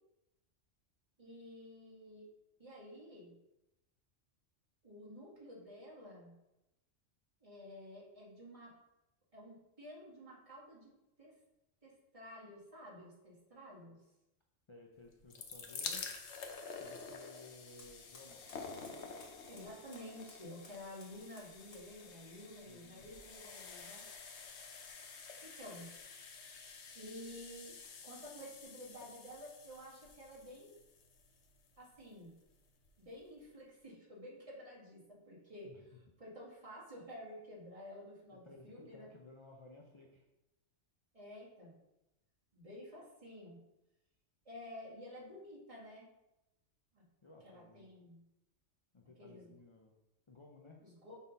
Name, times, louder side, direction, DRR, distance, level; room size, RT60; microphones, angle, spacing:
voice 1, 1.2-2.3 2.6-3.4 4.8-6.4 7.4-8.7 9.3-10.9 11.2-11.4 11.8-14.0 19.5-24.1 25.4-25.9 26.9-27.8 28.0-30.8 31.8-32.4 33.0-35.7 36.2-39.1 41.1-41.8 42.5-43.6 44.5-46.1 46.9-47.1 47.4-48.2 49.2-49.5 50.8-51.2, left 1 dB, 25° right, -6 dB, 2.1 m, -51 dB
voice 2, 14.7-16.1 16.8-18.7 22.7-23.1 35.6-36.0 38.3-40.3 47.2-47.9 48.9-49.9 50.3-50.8, left 2 dB, 35° left, 0 dB, 0.5 m, -57 dB
sound 1, 15.1-32.1 32.9-33.0 33.1-33.2, left 5 dB, 65° left, 1.1 m, -49 dB
Fire, 17.5-28.0, left 2 dB, 85° left, 1.9 m, -66 dB
6.2 x 3.9 x 5.3 m, 0.94 s
omnidirectional pair, 1.3 m